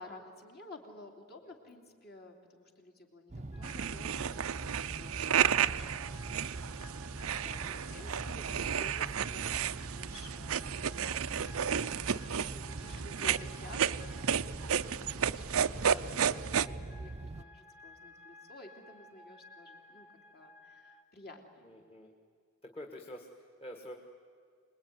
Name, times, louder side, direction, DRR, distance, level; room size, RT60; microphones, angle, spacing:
voice 1, 0.0-6.9 7.2-10.6 11.0-20.1 20.3-21.8, left 2 dB, 50° left, 3 dB, 3.2 m, -53 dB
voice 2, 1.4-1.8 4.9-5.0 7.4-7.8 14.6-15.0 21.6-22.1 22.6-23.9, equal, 25° left, 2 dB, 1.7 m, -49 dB
sound 1, 3.3-17.4, right 2 dB, 30° right, 0.6 m, -43 dB
sound 2, 3.5-21.0, left 1 dB, 10° right, 1.0 m, -57 dB
sound 3, 3.6-16.7, right 8 dB, 75° right, 0.6 m, -33 dB
26.0 x 20.5 x 9.6 m, 2.1 s
head